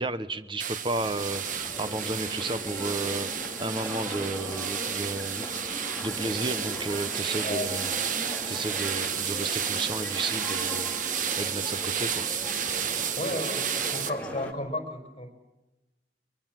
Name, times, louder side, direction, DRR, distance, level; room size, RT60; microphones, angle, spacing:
voice 1, 0.0-10.9 11.4-12.3, right 2 dB, 30° right, 12 dB, 1.0 m, -33 dB
sound 1, 0.6-14.1, right 8 dB, 45° right, 1.3 m, -32 dB
sound 2, 0.9-14.5, left 1 dB, 10° left, 2.4 m, -39 dB
voice 2, 7.4-7.7 13.2-15.4, left 1 dB, 30° left, 5 dB, 4.7 m, -33 dB
23.0 x 22.5 x 7.7 m, 1.0 s
head